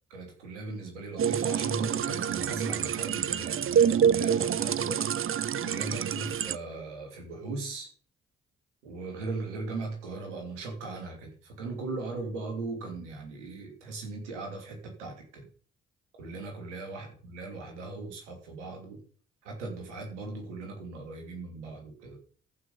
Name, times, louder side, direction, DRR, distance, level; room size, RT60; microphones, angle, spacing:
voice 1, 0.1-5.0 5.6-7.9 8.8-15.5 16.2-19.0 19.4-22.2, right 3 dB, 85° right, 2 dB, 2.7 m, -38 dB
sound 1, 1.2-6.6, right 8 dB, 40° right, 0.7 m, -27 dB
14.0 x 6.1 x 5.6 m, 0.43 s
hypercardioid pair, 40°, 35 cm